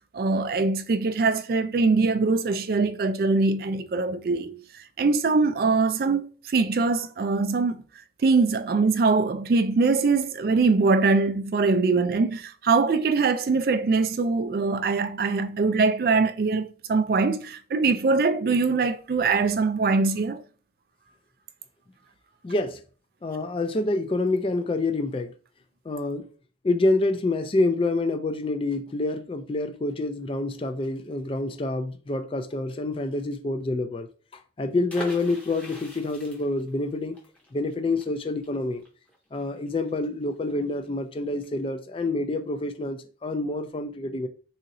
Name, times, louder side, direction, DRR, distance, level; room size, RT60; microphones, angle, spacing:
voice 1, 0.1-4.6 5.0-7.8 8.2-16.6 16.9-20.4, right 4 dB, 55° right, 0.3 m, -22 dB
voice 2, 22.4-22.8 23.2-25.3 25.9-26.2 26.6-34.1 34.3-37.2 37.5-38.8 39.3-44.3, left 2 dB, 30° left, 0.3 m, -27 dB
sound 1, 34.9-40.5 40.8-40.9 41.2-41.5, left 1 dB, 5° left, 0.8 m, -43 dB
3.9 x 2.8 x 2.6 m
head